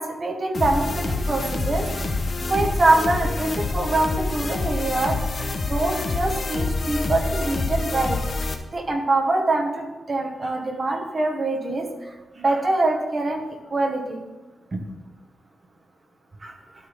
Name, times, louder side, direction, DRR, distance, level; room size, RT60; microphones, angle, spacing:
voice 1, 0.0-1.9 2.5-5.2 5.7-8.2 8.7-11.9 12.3-13.4 13.7-14.3 14.7-14.8 16.4-16.5, right 2 dB, 35° right, 2 dB, 1.4 m, -24 dB
sound 1, 0.5-8.5, left 3 dB, 40° left, 0.9 m, -26 dB
12.0 x 4.2 x 5.2 m, 1.2 s
wide cardioid pair, 135°, 0 cm